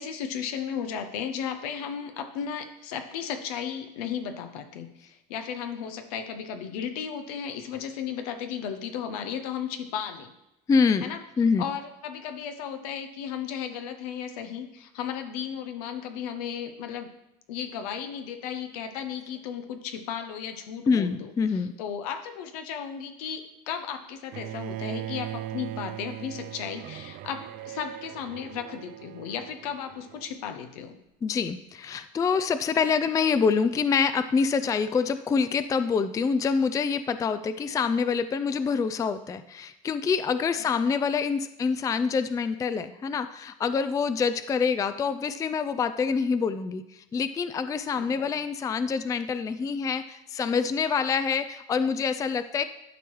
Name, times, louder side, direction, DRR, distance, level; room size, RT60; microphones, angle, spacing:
voice 1, 0.0-10.3 11.0-11.2 11.6-17.1 17.5-31.0 47.9-48.3, left 8 dB, 90° left, 7 dB, 0.7 m, -35 dB
voice 2, 10.7-11.6 20.9-21.7 31.2-52.6, left 5 dB, 20° left, 12 dB, 0.3 m, -26 dB
Bowed string instrument, 24.3-30.4, right 13 dB, 55° right, 0.4 m, -39 dB
12.0 x 4.6 x 3.1 m, 0.88 s
supercardioid pair, 100°, 19 cm